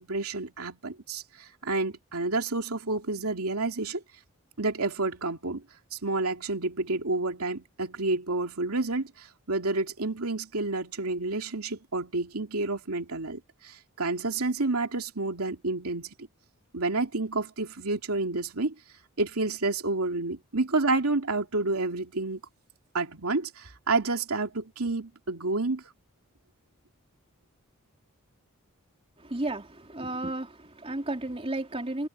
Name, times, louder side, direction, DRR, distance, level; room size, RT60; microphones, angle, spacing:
voice 1, 0.0-4.0 4.6-5.6 5.9-16.1 16.7-18.7 19.2-22.4 22.9-25.8, right 3 dB, 85° right, 2.6 m, -29 dB
voice 2, 29.2-32.1, right 2 dB, 25° right, 3.3 m, -33 dB
head